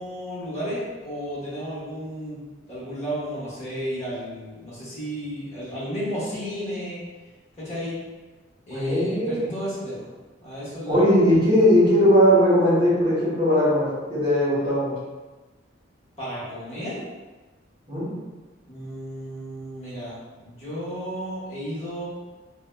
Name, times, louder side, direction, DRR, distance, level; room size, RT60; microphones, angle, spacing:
voice 1, 0.0-2.4 2.7-7.0 7.6-8.0 8.7-10.1 10.4-11.1 16.2-17.1 18.7-22.1, equal, 35° left, -10 dB, 1.3 m, -33 dB
voice 2, 8.7-9.5 10.9-14.9 17.9-18.1, equal, 25° right, -10 dB, 1.1 m, -19 dB
4.5 x 2.2 x 2.2 m, 1.3 s
head